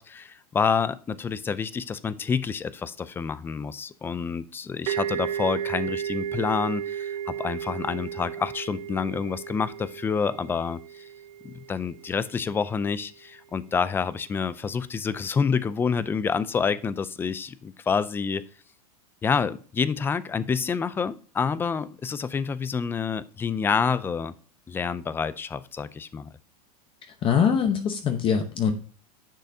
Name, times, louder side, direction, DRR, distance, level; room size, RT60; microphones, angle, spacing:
voice 1, 0.0-11.0 11.4-18.4 19.2-24.3 24.7-26.3, left 6 dB, 10° left, 17 dB, 0.3 m, -28 dB
sound 1, 4.9-12.4, right 10 dB, 80° right, 0.8 m, -34 dB
voice 2, 27.1-28.7, left 7 dB, 25° left, 6 dB, 0.8 m, -23 dB
10.0 x 6.4 x 2.7 m, 0.40 s
supercardioid pair, 140°, 20 cm